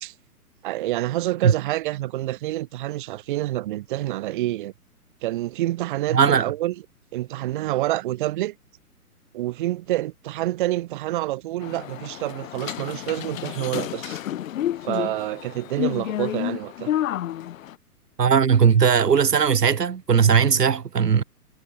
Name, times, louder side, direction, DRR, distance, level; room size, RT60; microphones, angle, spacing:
voice 1, 0.6-4.7 5.2-6.8 7.1-8.5 9.3-14.2 14.8-16.9, right 16 dB, 35° right, 0.9 m, -27 dB
voice 2, 6.1-6.5 18.2-21.2, right 7 dB, 85° right, 1.2 m, -18 dB
sound 1, 11.6-17.7, left 12 dB, 60° left, 0.5 m, -30 dB
figure-of-eight pair, 125°, 47 cm